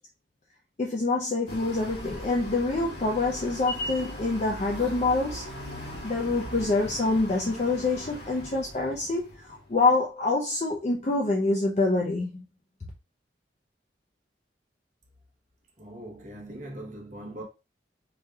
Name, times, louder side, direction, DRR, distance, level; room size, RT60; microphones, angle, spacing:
voice 1, 0.8-5.5 6.0-12.4, left 3 dB, 40° left, 0.5 m, -26 dB
sound 1, 1.5-9.8, left 1 dB, 65° left, 1.9 m, -39 dB
voice 2, 15.8-17.4, right 1 dB, 45° right, 1.0 m, -41 dB
4.9 x 2.7 x 2.3 m
head